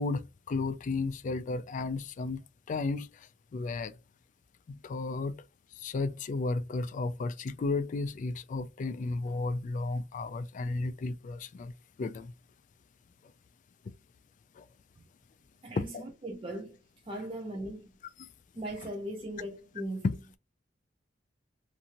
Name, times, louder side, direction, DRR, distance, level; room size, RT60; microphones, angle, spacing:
voice 1, 0.0-2.4 2.7-3.1 3.5-3.9 4.7-5.4 5.8-11.7 12.0-12.3 14.6-14.7 15.8-16.0 18.2-18.3 20.0-20.4, left 3 dB, 45° left, 0.3 m, -33 dB
voice 2, 15.6-16.8 17.1-17.8 18.6-20.0, right 1 dB, 30° right, 0.5 m, -38 dB
2.6 x 2.6 x 2.8 m
head